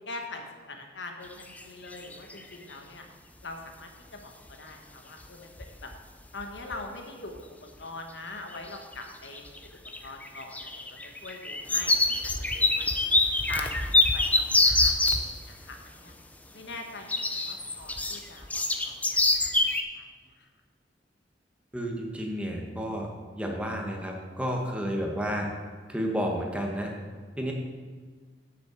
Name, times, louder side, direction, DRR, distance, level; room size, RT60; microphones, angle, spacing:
voice 1, 0.0-3.1 3.4-5.5 5.8-5.9 6.3-12.9 13.5-16.1 16.5-19.5 19.9-20.5, left 2 dB, 75° left, 3 dB, 1.3 m, -43 dB
sound 1, 1.4-1.6 1.9-2.5 4.5-4.6 5.2-5.3 5.6-5.9 6.2-6.8 7.4-7.5 8.5-9.0 9.3-15.2 17.1-19.8, left 2 dB, 10° left, 0.5 m, -25 dB
voice 2, 21.7-23.1 23.3-25.5 25.9-26.9 27.4-27.5, equal, 5° right, 0 dB, 1.3 m, -31 dB
7.9 x 6.6 x 6.9 m, 1.5 s
head